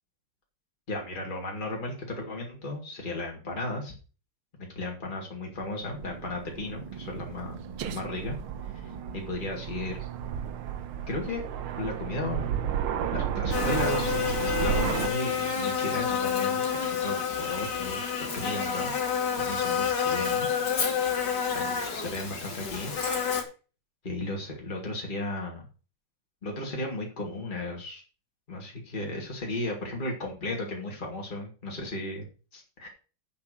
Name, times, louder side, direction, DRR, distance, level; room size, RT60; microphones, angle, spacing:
voice 1, 0.9-3.9 4.6-8.4 9.1-10.0 11.1-11.4 11.7-12.5 13.1-18.9 19.4-20.5 21.5-23.3 24.0-25.6 26.4-28.0 28.5-32.3 32.5-32.9, left 2 dB, 25° left, 0 dB, 2.6 m, -35 dB
Aircraft, 5.6-15.1, right 8 dB, 80° right, 1.8 m, -33 dB
Buzz, 13.5-23.4, left 7 dB, 55° left, 2.2 m, -29 dB
8.4 x 5.8 x 6.9 m, 0.35 s
omnidirectional pair, 2.3 m